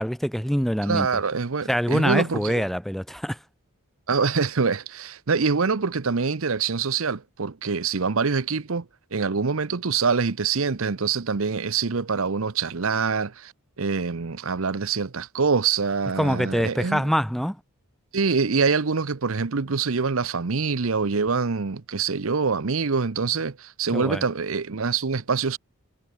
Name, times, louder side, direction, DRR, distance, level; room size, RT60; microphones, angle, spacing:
voice 1, 0.0-1.1 1.7-3.4 16.2-17.6 23.9-24.2, equal, ahead, 2.3 m, -24 dB
voice 2, 0.9-2.6 4.1-8.8 9.1-13.5 13.8-17.0 18.1-25.6, right 5 dB, 65° right, 0.8 m, -25 dB
head